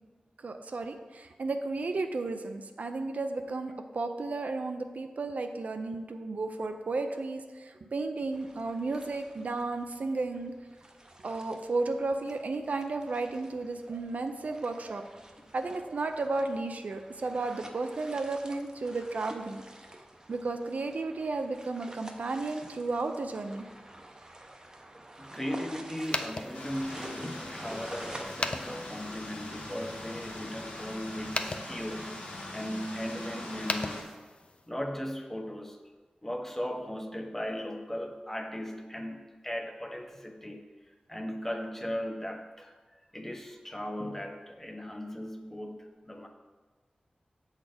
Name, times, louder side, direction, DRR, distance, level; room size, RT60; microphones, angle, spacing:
voice 1, 0.4-10.5 11.2-15.1 15.5-19.6 20.3-23.6, right 3 dB, 70° right, 6 dB, 0.5 m, -33 dB
sound 1, 8.3-28.2, right 1 dB, 25° right, 0.7 m, -49 dB
voice 2, 25.2-32.2 32.5-34.2 34.7-35.8 36.2-42.7 43.1-46.3, equal, 15° left, 3 dB, 0.7 m, -37 dB
sound 2, 26.0-34.7, left 3 dB, 45° left, 0.4 m, -40 dB
sound 3, 26.5-34.0, left 1 dB, 85° left, 1.2 m, -42 dB
7.1 x 4.1 x 5.0 m, 1.3 s
wide cardioid pair, 80°, 3 cm